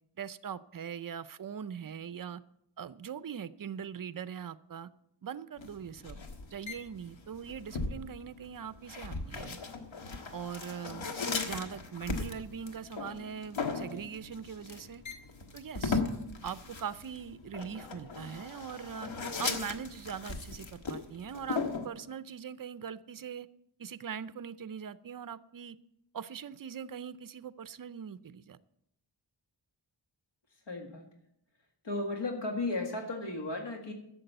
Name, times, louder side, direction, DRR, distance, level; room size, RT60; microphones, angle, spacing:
voice 1, 0.2-2.4 2.8-4.9 5.2-9.6 10.3-11.1 11.4-15.0 15.5-16.0 16.4-19.1 19.4-23.5 23.8-25.8 26.1-28.6, right 7 dB, 50° right, 0.6 m, -41 dB
sound 1, 5.6-21.9, left 4 dB, 90° left, 1.6 m, -38 dB
voice 2, 30.7-31.1 31.8-33.9, left 2 dB, 70° left, 1.9 m, -35 dB
12.0 x 7.5 x 8.0 m
wide cardioid pair, 110°, 45 cm